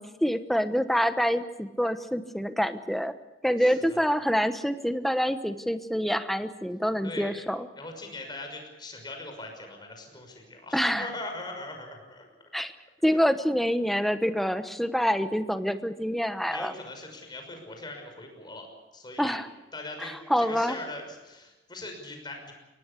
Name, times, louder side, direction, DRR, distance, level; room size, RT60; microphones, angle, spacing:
voice 1, 0.0-3.1 3.4-7.7 10.7-11.1 12.5-12.7 13.0-16.7 19.2-19.5 20.0-20.8, equal, ahead, 10 dB, 1.1 m, -26 dB
voice 2, 3.6-4.1 7.0-7.4 7.8-12.2 13.1-13.2 16.4-18.7 18.9-19.4 19.7-22.5, left 2 dB, 25° left, 3 dB, 6.0 m, -41 dB
23.5 x 18.5 x 8.4 m, 1.1 s
head